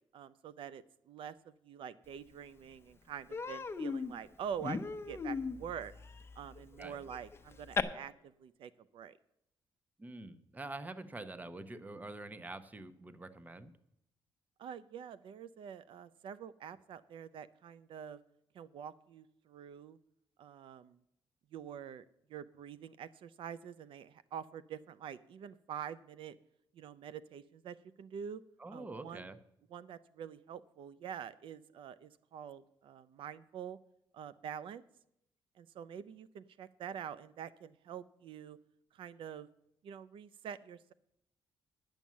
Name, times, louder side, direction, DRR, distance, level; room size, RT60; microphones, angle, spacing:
voice 1, 0.1-5.9 6.4-9.2 14.6-18.2 18.5-20.0 20.4-21.0 21.5-22.0 22.3-26.4 26.7-28.4 28.7-29.3 29.7-33.8 34.1-34.8 35.6-38.6 38.9-39.5 39.8-40.9, right 8 dB, 75° right, 15 dB, 0.5 m, -46 dB
Human voice, 2.3-2.4 2.7-2.9 3.3-7.8, left 5 dB, 30° left, 0.7 m, -38 dB
voice 2, 10.0-13.7 28.6-29.4, right 2 dB, 20° right, 12 dB, 0.8 m, -46 dB
10.5 x 7.1 x 7.3 m, 0.77 s
cardioid pair, 120°, 9 cm